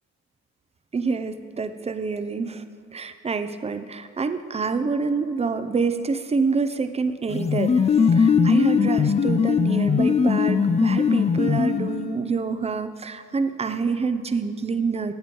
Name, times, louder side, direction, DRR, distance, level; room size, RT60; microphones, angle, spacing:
voice 1, 0.9-2.6 2.9-7.9 8.1-15.1, right 4 dB, 20° right, 10 dB, 0.6 m, -27 dB
sound 1, 7.3-12.2, left 6 dB, 20° left, 0.3 m, -20 dB
9.7 x 8.0 x 5.3 m, 2.1 s
cardioid pair, 90°, 30 cm